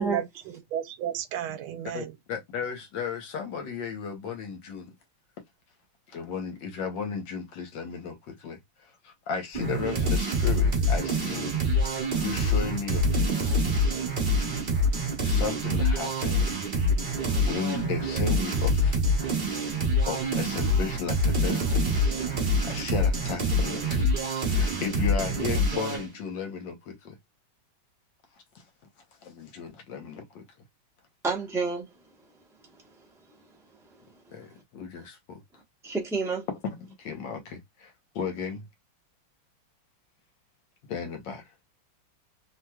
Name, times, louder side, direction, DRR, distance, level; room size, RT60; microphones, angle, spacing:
voice 1, 0.0-2.1, right 10 dB, 85° right, 1.5 m, -33 dB
voice 2, 1.9-4.9 6.1-8.6 9.0-11.5 11.8-13.5 15.2-16.5 17.4-19.0 20.1-21.9 22.3-27.1 29.2-30.4 34.3-35.4 36.8-38.6 40.9-41.4, left 6 dB, 65° left, 1.4 m, -35 dB
sound 1, 9.5-26.1, left 1 dB, 35° right, 0.9 m, -26 dB
voice 3, 31.2-31.9 32.8-33.1 33.8-33.9 34.5-34.6 35.8-36.5, right 4 dB, 5° right, 0.4 m, -30 dB
3.3 x 2.9 x 2.2 m
omnidirectional pair, 2.3 m